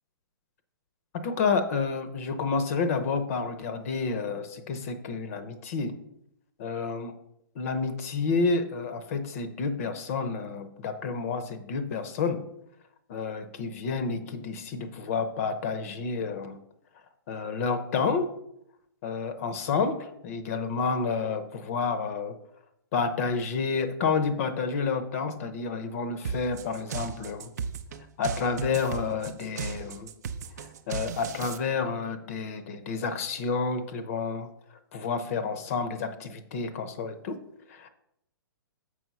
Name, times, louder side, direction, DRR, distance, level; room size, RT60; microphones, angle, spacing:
voice 1, 1.1-5.9 6.6-7.1 7.6-12.4 13.1-16.6 17.3-18.3 19.0-22.4 22.9-27.5 28.2-30.1 30.6-34.5 34.9-37.4 37.7-37.9, left 5 dB, 35° left, 10 dB, 0.8 m, -30 dB
sound 1, 26.2-31.6, right 6 dB, 40° right, 0.6 m, -35 dB
7.3 x 4.9 x 5.5 m, 0.78 s
figure-of-eight pair, 120°, 13 cm